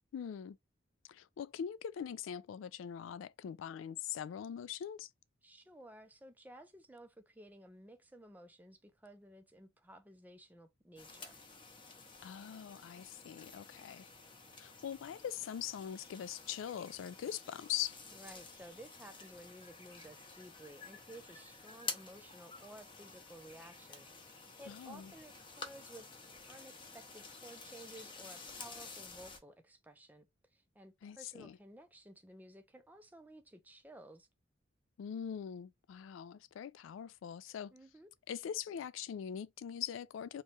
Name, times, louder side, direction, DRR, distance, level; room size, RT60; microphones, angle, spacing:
voice 1, 0.1-0.6 1.1-5.1 12.2-14.1 14.6-18.0 24.7-25.1 31.0-31.6 35.0-37.7 38.3-40.4, left 9 dB, 80° left, 0.3 m, -42 dB
voice 2, 5.4-11.4 18.1-26.1 26.5-30.3 30.5-34.3 37.7-38.1, right 1 dB, 10° right, 0.5 m, -55 dB
sound 1, 11.0-29.4, left 4 dB, 25° left, 0.7 m, -51 dB
2.9 x 2.3 x 4.1 m
head